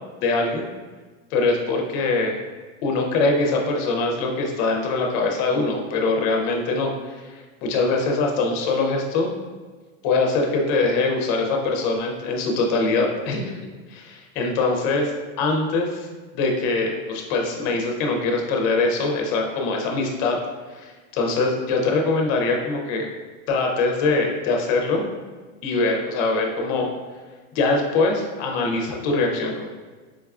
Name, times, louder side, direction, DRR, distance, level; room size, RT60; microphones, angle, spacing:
voice 1, 0.2-0.7 1.3-2.4 2.8-9.3 10.0-13.6 13.9-15.1 15.4-16.1 16.3-20.4 20.7-23.1 23.5-25.0 25.6-26.9 27.5-29.7, left 3 dB, 35° left, 1 dB, 0.4 m, -23 dB
4.7 x 2.2 x 2.3 m, 1.4 s
supercardioid pair, 155°, 40 cm